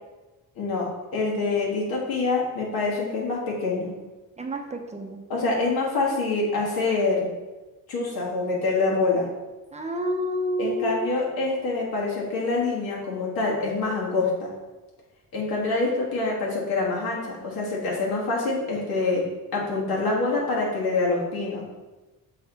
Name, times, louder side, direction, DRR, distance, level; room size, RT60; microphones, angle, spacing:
voice 1, 0.6-3.9 5.3-7.3 7.9-9.3 10.6-14.5 15.3-19.2 19.5-21.6, left 3 dB, 85° left, -4 dB, 1.9 m, -26 dB
voice 2, 4.4-5.2 9.7-11.1, equal, 20° right, 3 dB, 0.6 m, -29 dB
6.7 x 4.1 x 4.0 m, 1.2 s
cardioid pair, 120°, 36 cm